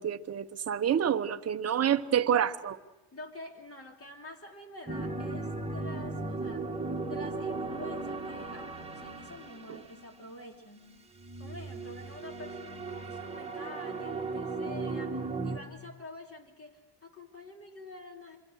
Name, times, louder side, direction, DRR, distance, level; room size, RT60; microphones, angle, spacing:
voice 1, 0.0-2.7, right 9 dB, 30° right, 0.9 m, -28 dB
voice 2, 2.1-2.5 3.1-6.7 7.1-11.0 11.4-18.4, left 2 dB, 30° left, 3.2 m, -47 dB
sound 1, 4.9-10.2 11.2-15.6, right 3 dB, 10° right, 1.9 m, -36 dB
26.5 x 23.5 x 6.4 m
cardioid pair, 125°, 48 cm